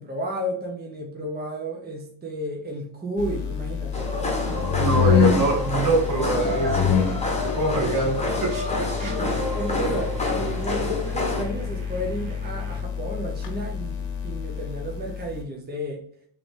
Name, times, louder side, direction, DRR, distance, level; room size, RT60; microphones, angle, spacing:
voice 1, 0.0-5.1 6.4-7.1 7.4-7.5 8.2-8.3 9.1-16.0, right 1 dB, 20° right, 0 dB, 0.9 m, -32 dB
sound 1, 3.2-15.4, left 7 dB, 65° left, 0.9 m, -27 dB
sound 2, 3.9-11.5, left 2 dB, 15° left, 1.3 m, -28 dB
voice 2, 4.7-6.9 7.6-9.2 9.7-9.9, right 2 dB, 45° right, 1 dB, 1.2 m, -25 dB
sound 3, 5.5-12.8, right 3 dB, 85° right, 1.4 m, -42 dB
3.9 x 3.1 x 3.3 m, 0.64 s
cardioid pair, 100°, 45 cm